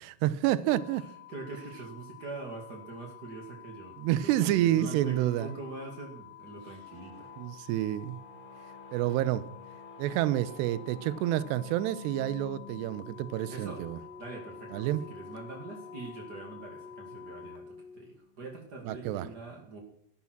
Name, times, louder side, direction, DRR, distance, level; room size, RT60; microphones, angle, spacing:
voice 1, 0.2-1.0 4.0-5.5 7.4-8.2 8.9-9.5 10.0-14.0 14.7-15.0 18.8-19.3, right 13 dB, 85° right, 2.5 m, -28 dB
sound 1, 0.7-17.6, left 15 dB, 70° left, 2.1 m, -51 dB
voice 2, 1.3-7.3 13.5-13.8 14.2-19.8, right 3 dB, 60° right, 1.0 m, -43 dB
sound 2, 4.6-18.4, left 4 dB, 35° left, 0.8 m, -50 dB
14.0 x 11.5 x 6.1 m
omnidirectional pair, 5.6 m